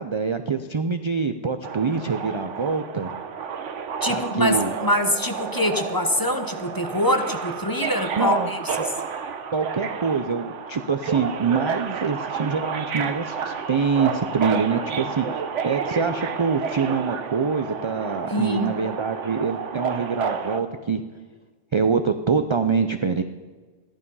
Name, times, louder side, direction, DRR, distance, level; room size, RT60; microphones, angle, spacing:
voice 1, 0.0-3.1 4.1-4.7 8.2-8.5 9.5-21.0 21.7-23.2, right 5 dB, 45° right, 9 dB, 0.3 m, -25 dB
Subway metro underground, 1.6-20.6, right 6 dB, 85° right, 1.2 m, -30 dB
voice 2, 4.0-8.9 18.3-18.7, left 1 dB, 20° left, 7 dB, 0.8 m, -24 dB
14.5 x 11.0 x 5.5 m, 1.4 s
omnidirectional pair, 1.2 m